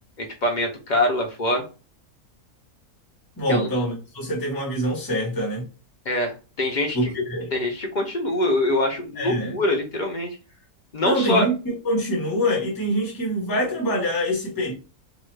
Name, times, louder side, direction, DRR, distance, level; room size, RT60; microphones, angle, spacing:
voice 1, 0.2-1.6 3.5-3.7 6.1-7.1 7.5-10.4 10.9-11.5, left 1 dB, 55° left, 0.5 m, -24 dB
voice 2, 3.4-5.6 6.9-7.5 9.1-9.6 11.0-14.7, equal, 15° left, 1.1 m, -25 dB
2.9 x 2.3 x 3.1 m
omnidirectional pair, 1.5 m